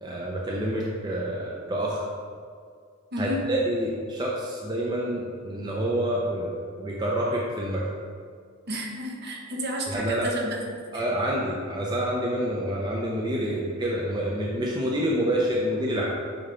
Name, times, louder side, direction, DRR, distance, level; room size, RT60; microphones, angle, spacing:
voice 1, 0.0-2.0 3.2-7.8 9.9-10.3 10.9-16.1, right 1 dB, 20° right, -3 dB, 0.6 m, -27 dB
voice 2, 3.1-3.5 8.7-10.6 10.9-11.1, equal, 50° right, -1 dB, 1.0 m, -31 dB
8.7 x 3.3 x 3.6 m, 2.1 s
head